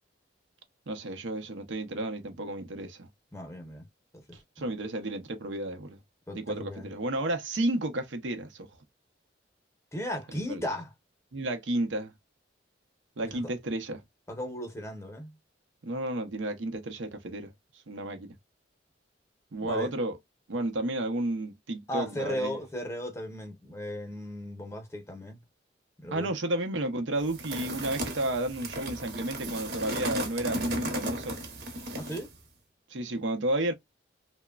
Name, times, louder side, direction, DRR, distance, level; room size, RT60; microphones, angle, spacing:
voice 1, 0.9-3.1 4.6-6.0 6.3-8.7 10.5-10.6 11.3-12.1 13.2-14.0 15.8-17.5 17.9-18.4 19.5-20.2 20.5-22.6 26.1-31.4 32.9-33.7, right 1 dB, 85° right, 0.7 m, -32 dB
voice 2, 3.3-3.9 4.1-4.2 6.3-6.9 9.9-10.9 13.2-13.4 14.3-15.3 19.7-19.9 21.9-25.4 26.0-26.3 31.9-32.3, equal, 15° left, 0.7 m, -36 dB
sound 1, 27.3-32.3, right 1 dB, 55° right, 0.9 m, -35 dB
3.0 x 2.1 x 2.3 m
head